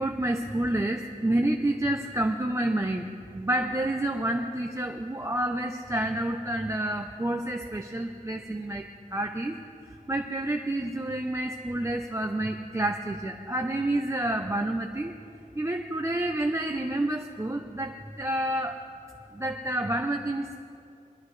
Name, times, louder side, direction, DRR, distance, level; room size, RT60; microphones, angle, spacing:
voice 1, 0.0-9.6 9.9-15.1 15.6-18.8 19.3-20.5, right 1 dB, 20° right, 3 dB, 0.7 m, -29 dB
22.5 x 13.0 x 3.2 m, 2.5 s
wide cardioid pair, 85°, 15 cm